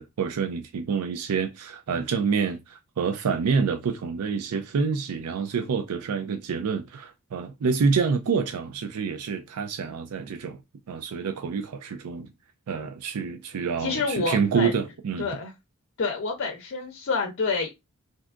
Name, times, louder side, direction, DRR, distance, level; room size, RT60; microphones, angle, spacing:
voice 1, 0.0-10.6 10.9-12.3 12.7-15.3, right 5 dB, 85° right, 0.4 m, -27 dB
voice 2, 13.8-14.7 15.2-15.5 16.0-17.7, left 4 dB, 55° left, 0.6 m, -28 dB
3.4 x 2.7 x 2.4 m
head